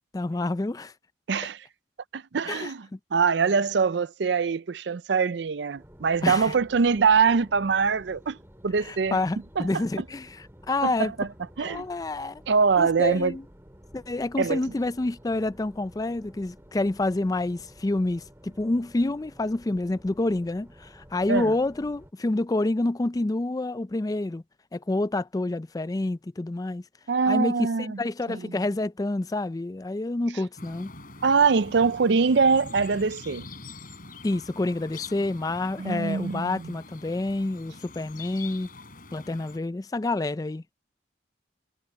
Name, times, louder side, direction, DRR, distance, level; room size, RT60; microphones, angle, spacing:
voice 1, 0.1-0.9 2.5-3.0 6.2-6.5 8.8-11.1 11.6-12.4 12.8-13.4 13.9-24.4 24.7-26.8 27.3-30.9 34.2-38.7 39.1-40.7, left 2 dB, 20° left, 0.4 m, -28 dB
voice 2, 1.3-1.6 2.1-8.4 8.6-9.2 9.6-9.7 10.8-11.3 11.6-11.8 12.5-13.4 14.4-14.6 21.3-21.5 27.1-28.0 28.3-28.5 31.2-33.4 35.8-36.7, right 5 dB, 65° right, 0.5 m, -23 dB
sound 1, 5.8-22.1, equal, 15° right, 2.3 m, -52 dB
sound 2, 30.6-39.6, left 3 dB, 50° left, 4.7 m, -44 dB
head